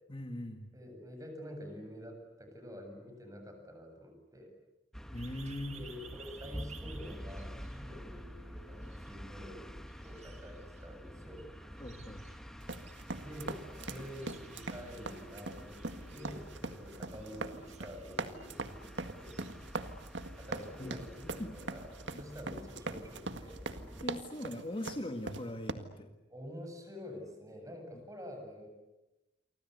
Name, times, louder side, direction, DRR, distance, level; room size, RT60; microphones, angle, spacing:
voice 1, 0.1-0.7 5.1-5.8 11.8-12.2 15.9-16.0 20.8-20.9 21.2-21.5 22.1-22.2 24.0-26.1, left 1 dB, 30° left, 5 dB, 2.0 m, -40 dB
voice 2, 0.7-4.5 5.7-11.9 13.2-18.9 19.2-19.4 20.4-23.6 26.3-28.7, equal, 20° right, 4 dB, 7.7 m, -48 dB
sound 1, 4.9-24.1, equal, 5° left, 1.8 m, -48 dB
sound 2, 5.1-8.3 8.7-9.6 9.9-21.2, right 6 dB, 40° right, 2.0 m, -58 dB
sound 3, 12.6-25.7, right 3 dB, 75° right, 1.9 m, -41 dB
29.0 x 24.5 x 8.2 m, 0.99 s
head